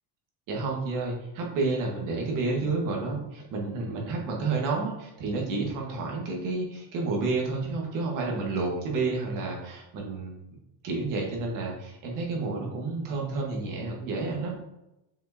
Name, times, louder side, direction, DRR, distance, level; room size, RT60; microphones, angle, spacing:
voice 1, 0.5-10.3 10.8-14.6, right 3 dB, 45° right, -1 dB, 1.6 m, -30 dB
7.6 x 4.6 x 2.8 m, 0.91 s
cardioid pair, 170°, 45 cm